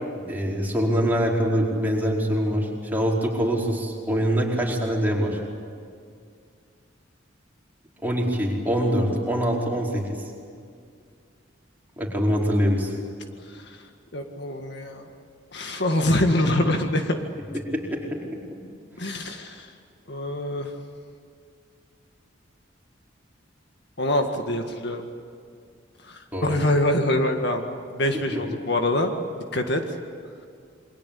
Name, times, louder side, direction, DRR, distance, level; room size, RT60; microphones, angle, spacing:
voice 1, 0.3-5.4 8.0-10.2 12.0-12.9 17.7-18.2 26.3-26.5 28.3-28.4, equal, 10° right, -3 dB, 4.8 m, -24 dB
voice 2, 13.4-13.8 14.1-15.1 15.5-17.2 19.0-19.7 20.1-20.8 24.0-25.1 26.0-27.7 27.9-29.1 29.5-29.8, left 1 dB, 55° left, 4 dB, 1.9 m, -25 dB
28.0 x 24.0 x 8.6 m, 2.3 s
head